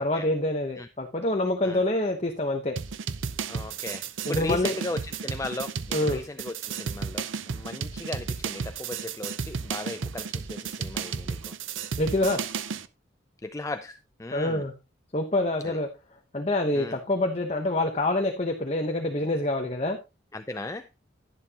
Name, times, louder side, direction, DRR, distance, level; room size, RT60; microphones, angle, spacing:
voice 1, 0.0-2.7 4.3-4.7 5.9-6.2 12.0-12.5 14.3-14.7 15.1-15.9 16.3-20.0, left 1 dB, 35° left, 4 dB, 1.0 m, -26 dB
sound 1, 2.8-12.9, right 6 dB, 85° right, 0.6 m, -33 dB
voice 2, 3.5-4.0 4.3-5.7 6.1-11.5 13.4-14.6 15.6-15.8 16.7-16.9 20.3-20.9, left 2 dB, 15° left, 9 dB, 0.4 m, -36 dB
11.0 x 10.5 x 2.9 m, 0.27 s
head